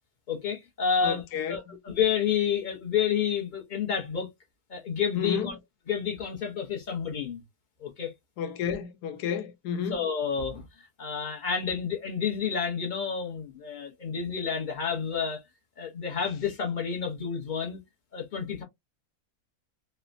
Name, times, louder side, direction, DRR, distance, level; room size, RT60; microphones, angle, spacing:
voice 1, 0.3-1.2 1.5-4.3 4.7-5.6 5.9-7.4 7.8-8.1 9.9-10.7 11.0-15.4 15.8-17.8 18.1-18.6, left 7 dB, 55° left, 0.5 m, -29 dB
voice 2, 1.0-1.7 5.1-5.5 8.4-10.0, left 7 dB, 85° left, 1.2 m, -31 dB
3.1 x 2.1 x 2.4 m
omnidirectional pair, 1.7 m